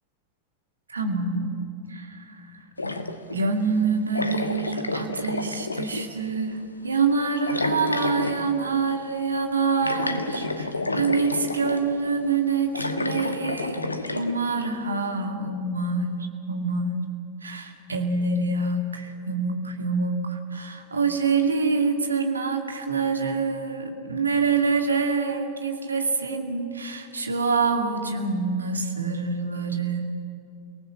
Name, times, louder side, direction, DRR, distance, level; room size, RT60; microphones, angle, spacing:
voice 1, 0.9-1.5 1.9-2.3 3.3-6.6 6.8-16.2 16.5-17.0 17.4-30.1, right 4 dB, 75° right, 4 dB, 2.3 m, -26 dB
sound 1, 2.8-3.4 4.1-6.1 7.5-8.5 9.8-11.8 12.7-14.3, left 2 dB, 80° left, 1.3 m, -29 dB
29.5 x 19.0 x 7.3 m, 2.6 s
figure-of-eight pair, 90°, 0 cm